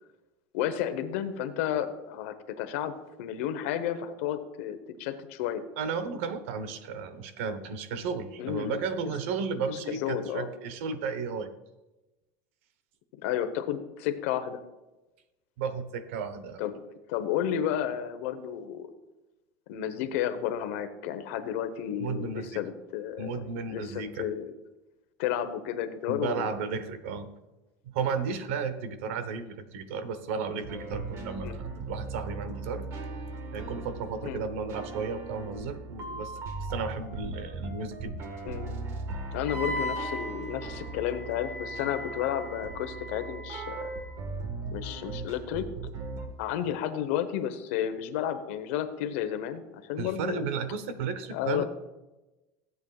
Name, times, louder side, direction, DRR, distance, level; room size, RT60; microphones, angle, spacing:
voice 1, 0.5-2.9 3.2-5.6 8.4-9.1 10.0-10.5 13.2-14.6 16.6-16.8 17.1-18.9 19.7-23.4 23.7-24.5 25.2-26.5 31.4-31.6 34.2-34.4 38.4-38.7 39.3-43.9 44.7-45.7 46.4-50.5 51.3-51.6, left 10 dB, 80° left, 10 dB, 1.0 m, -32 dB
voice 2, 5.8-11.5 15.6-16.6 22.0-22.6 23.2-24.3 26.1-27.3 27.8-32.9 33.5-38.2 50.0-51.6, right 5 dB, 85° right, 11 dB, 1.0 m, -34 dB
sound 1, 30.6-46.3, right 3 dB, 45° right, 1.4 m, -39 dB
Wind instrument woodwind instrument, 39.5-44.1, equal, 10° left, 2.1 m, -38 dB
16.0 x 8.2 x 2.4 m, 1.0 s
cardioid pair, 145°, 7 cm